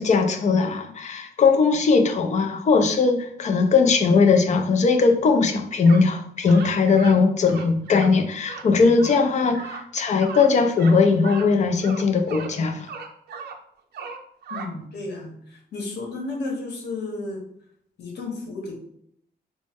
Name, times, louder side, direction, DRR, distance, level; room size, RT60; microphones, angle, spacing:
voice 1, 0.0-12.9, left 4 dB, 45° left, 5 dB, 0.5 m, -19 dB
sound 1, 5.8-6.1 6.4-7.2 7.4-8.1 8.4-8.7 9.0-9.2 9.5-9.8 10.2-10.5 10.7-10.9 11.2-11.5 11.8-12.5 12.9-13.6 13.9-14.7, right 5 dB, 75° right, 0.5 m, -37 dB
voice 2, 14.5-17.4 18.0-18.8, left 3 dB, 85° left, 1 dB, 1.0 m, -33 dB
4.1 x 2.1 x 3.4 m, 0.69 s
wide cardioid pair, 140°, 17 cm